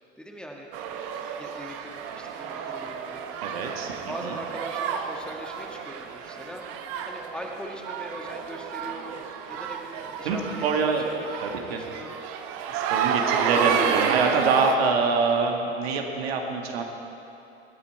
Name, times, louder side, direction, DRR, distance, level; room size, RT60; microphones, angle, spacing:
voice 1, 0.2-3.3 4.1-12.2, equal, 5° left, 0 dB, 1.6 m, -41 dB
sound 1, 0.7-14.8, right 7 dB, 45° right, 1.1 m, -30 dB
voice 2, 3.4-3.9 4.2-4.4 10.2-11.1 11.4-11.8 12.7-16.8, right 4 dB, 60° right, 2 dB, 1.8 m, -25 dB
21.0 x 10.5 x 4.6 m, 2.7 s
figure-of-eight pair, 80°, 34 cm